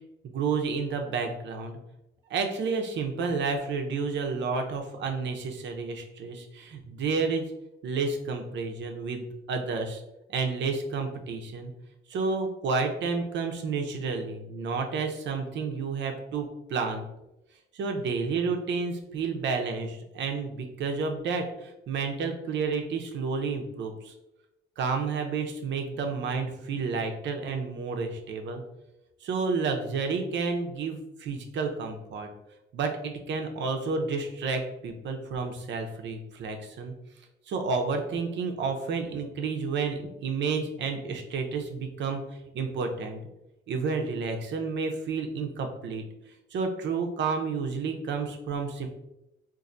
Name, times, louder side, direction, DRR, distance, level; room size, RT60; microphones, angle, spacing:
voice 1, 0.2-1.8 2.3-7.5 7.8-10.0 10.3-11.7 12.1-17.1 17.7-24.1 24.8-28.6 29.2-32.3 32.7-36.9 37.5-42.2 42.5-43.2 43.7-46.0 46.5-48.9, right 4 dB, 65° right, 4 dB, 0.6 m, -30 dB
4.0 x 2.6 x 2.5 m, 0.90 s
cardioid pair, 90°, 20 cm